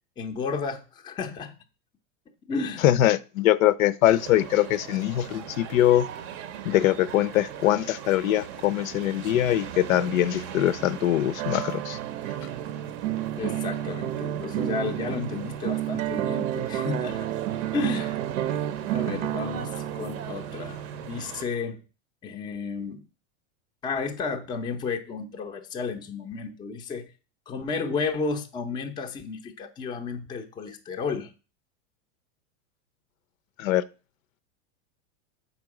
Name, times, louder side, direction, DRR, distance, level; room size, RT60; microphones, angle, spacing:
voice 1, 0.2-1.5 2.5-2.9 13.4-17.3 17.7-18.2 18.9-21.8 22.2-23.0 23.8-27.1 27.5-31.3, left 4 dB, 10° left, 0.5 m, -32 dB
voice 2, 2.8-6.1 6.6-12.0 33.6-33.8, left 13 dB, 90° left, 0.7 m, -22 dB
sound 1, 4.0-21.4, right 9 dB, 35° right, 0.6 m, -40 dB
sound 2, 11.4-21.2, right 12 dB, 75° right, 0.7 m, -31 dB
7.1 x 5.2 x 4.8 m
supercardioid pair, 150°, 39 cm